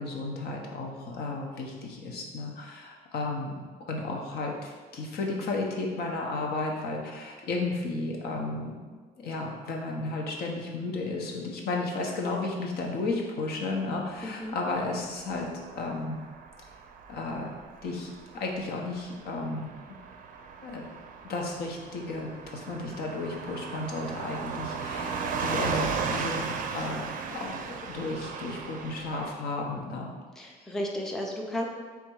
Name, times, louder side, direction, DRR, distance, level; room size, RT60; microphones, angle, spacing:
voice 1, 0.0-3.5 3.9-8.8 9.2-15.5 15.7-16.2 17.1-17.5 17.8-18.1 18.4-19.7 20.6-20.8 21.2-26.5 26.7-30.1, left 3 dB, 70° left, 0 dB, 0.8 m, -33 dB
voice 2, 14.2-14.6 30.4-31.7, left 1 dB, 5° left, 0 dB, 0.4 m, -33 dB
Car passing by / Truck, 15.0-29.3, right 5 dB, 50° right, 0.4 m, -36 dB
3.5 x 2.6 x 4.6 m, 1.5 s
cardioid pair, 110°, 17 cm